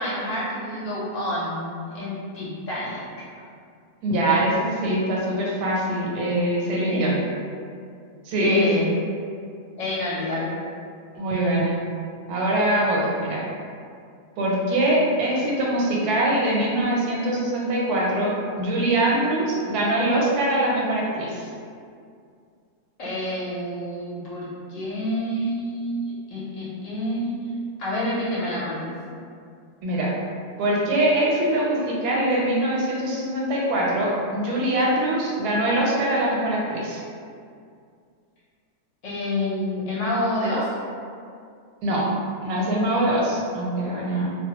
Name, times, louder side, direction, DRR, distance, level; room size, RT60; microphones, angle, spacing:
voice 1, 0.0-3.0 6.8-7.0 8.4-8.9 9.8-10.6 23.0-27.4 27.8-29.0 39.0-40.7, left 1 dB, 60° left, -8 dB, 0.9 m, -28 dB
voice 2, 4.0-7.2 8.2-8.8 11.1-11.8 12.3-13.4 14.4-21.5 29.8-30.1 30.6-37.0 41.8-42.1 42.4-44.3, right 1 dB, 85° right, -4 dB, 1.1 m, -23 dB
2.5 x 2.0 x 2.8 m, 2.3 s
omnidirectional pair, 1.6 m